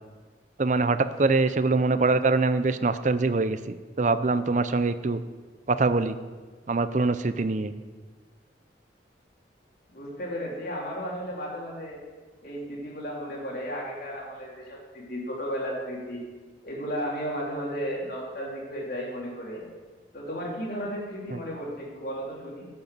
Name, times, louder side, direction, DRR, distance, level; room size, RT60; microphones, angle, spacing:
voice 1, 0.6-5.2 5.7-6.2 6.7-7.7 21.3-21.4, right 3 dB, 40° right, 12 dB, 0.5 m, -24 dB
voice 2, 9.9-12.0 12.4-16.2 16.6-19.6 20.1-22.7, equal, 55° left, -4 dB, 3.2 m, -34 dB
11.0 x 6.7 x 8.2 m, 1.4 s
head